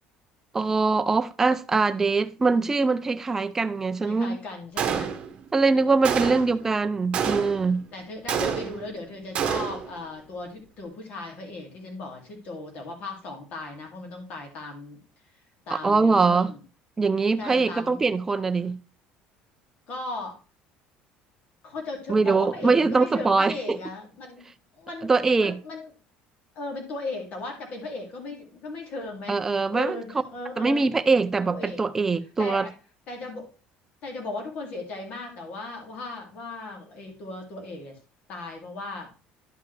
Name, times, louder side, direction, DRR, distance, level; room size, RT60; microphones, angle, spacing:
voice 1, 0.5-4.4 5.5-7.8 15.8-16.5 17.0-18.8 22.1-23.8 25.0-25.6 29.3-30.0 30.6-32.7, right 4 dB, 15° right, 0.4 m, -22 dB
voice 2, 4.0-5.2 6.2-6.4 7.9-15.0 15.7-16.6 17.4-18.0 19.9-20.4 21.6-24.5 24.7-25.9 26.5-29.4 29.7-30.9 31.5-31.8 32.4-32.7 33.1-33.5 34.0-38.0 38.3-39.1, left 2 dB, 45° left, 2.5 m, -37 dB
Gunshot gunfire, 4.8-5.5 6.0-6.6 7.1-7.7 8.3-8.9 9.3-9.9, right 7 dB, 35° right, 1.1 m, -28 dB
11.0 x 5.5 x 3.3 m
cardioid pair, 155°, 3 cm